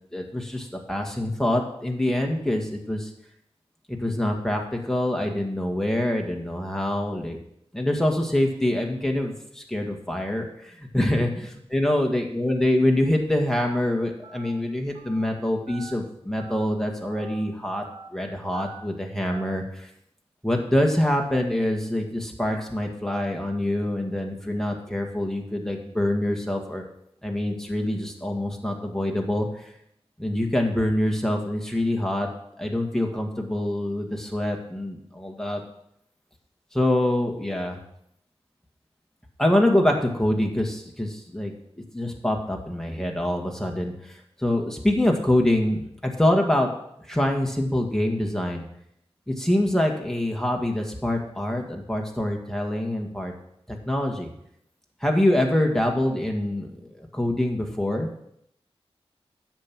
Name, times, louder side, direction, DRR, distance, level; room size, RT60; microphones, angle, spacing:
voice 1, 0.1-3.1 3.9-7.4 7.7-17.8 18.1-19.9 20.4-26.8 27.2-29.5 30.2-32.3 32.6-35.6 36.7-37.8 39.4-44.1 44.4-46.7 47.1-48.6 49.3-53.3 53.7-54.3 55.0-58.1, left 1 dB, 5° left, 2 dB, 1.8 m, -25 dB
Telephone, 13.5-13.8 14.2-14.5 14.9-15.2 15.7-15.9 16.4-16.7 17.1-17.4 17.8-18.1 18.5-18.8 19.2-19.5, right 5 dB, 50° right, 2.1 m, -44 dB
9.7 x 7.0 x 6.1 m, 0.74 s
wide cardioid pair, 75°, 10 cm